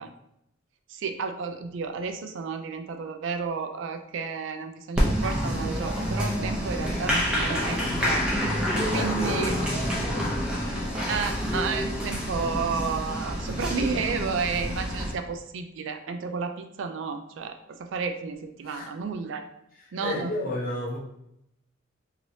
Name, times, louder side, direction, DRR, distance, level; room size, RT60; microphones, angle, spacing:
voice 1, 0.9-8.2 8.9-9.5 11.1-19.4 19.9-20.3, right 5 dB, 65° right, 7 dB, 0.3 m, -32 dB
Applause, 5.0-15.1, equal, 5° right, 0.6 m, -27 dB
voice 2, 8.9-10.2 18.6-18.9 20.0-21.0, left 1 dB, 45° left, -3 dB, 0.7 m, -32 dB
3.0 x 2.9 x 2.7 m, 0.78 s
head